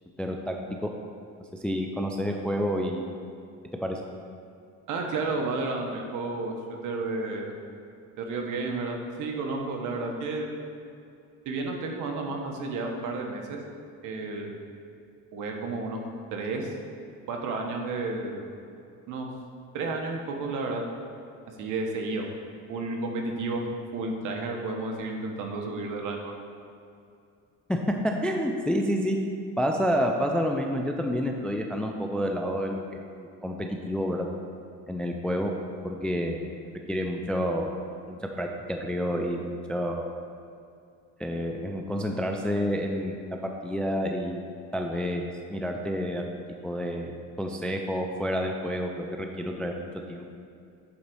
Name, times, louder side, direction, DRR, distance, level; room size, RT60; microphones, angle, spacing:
voice 1, 0.2-0.9 1.5-3.1 3.8-4.0 27.7-27.8 28.0-29.2 29.6-32.8 33.2-34.3 34.9-35.5 35.8-36.5 36.9-37.8 38.1-40.1 41.2-44.5 44.7-50.3, equal, 5° left, 2 dB, 0.3 m, -29 dB
voice 2, 4.9-7.5 8.2-10.5 11.4-13.6 14.0-14.5 15.3-16.0 16.3-16.7 17.3-18.4 19.1-19.3 19.7-20.8 21.6-22.3 22.7-23.6 23.9-26.3, right 3 dB, 60° right, 1 dB, 1.3 m, -31 dB
8.5 x 4.0 x 6.1 m, 2.4 s
cardioid pair, 130°, 34 cm